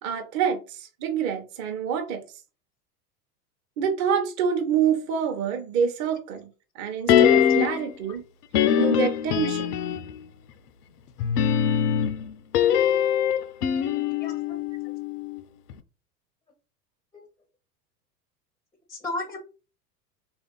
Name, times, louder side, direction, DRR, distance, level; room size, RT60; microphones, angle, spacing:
voice 1, 0.0-2.2 3.8-6.5 6.8-8.2 8.7-9.6, right 7 dB, 35° right, 0.7 m, -26 dB
sound 1, 7.1-7.9 8.5-10.2 11.2-15.4 15.7-15.8, left 9 dB, 75° left, 0.5 m, -22 dB
voice 2, 14.2-14.9 17.1-17.2 18.9-19.4, left 2 dB, 10° left, 0.5 m, -35 dB
3.2 x 2.6 x 3.7 m
figure-of-eight pair, 90°, 47 cm